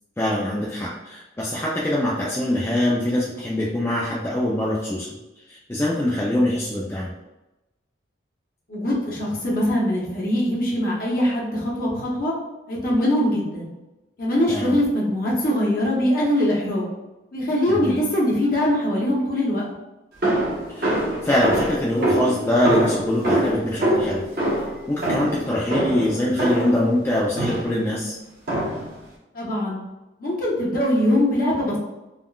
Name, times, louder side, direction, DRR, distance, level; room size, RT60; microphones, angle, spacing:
voice 1, 0.2-5.1 5.5-7.1 14.5-14.7 17.7-18.0 20.7-20.8 21.2-24.2 24.9-28.2, left 1 dB, 15° left, -5 dB, 0.3 m, -23 dB
voice 2, 8.7-12.3 12.7-13.7 14.2-16.9 17.3-19.6 29.3-29.8 30.2-31.8, left 1 dB, 50° left, -4 dB, 0.9 m, -22 dB
sound 1, 20.2-26.9 27.4-27.8 28.5-29.0, right 1 dB, 55° right, 0.9 m, -24 dB
3.5 x 2.2 x 2.3 m, 1.0 s
head